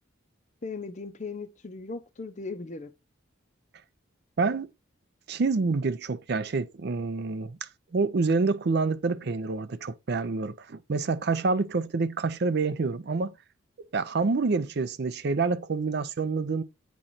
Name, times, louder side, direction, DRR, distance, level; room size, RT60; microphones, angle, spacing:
voice 1, 0.6-2.9, left 4 dB, 35° left, 0.6 m, -38 dB
voice 2, 4.4-4.7 5.3-13.3 13.8-16.6, right 4 dB, 55° right, 0.5 m, -27 dB
8.7 x 3.1 x 4.0 m
head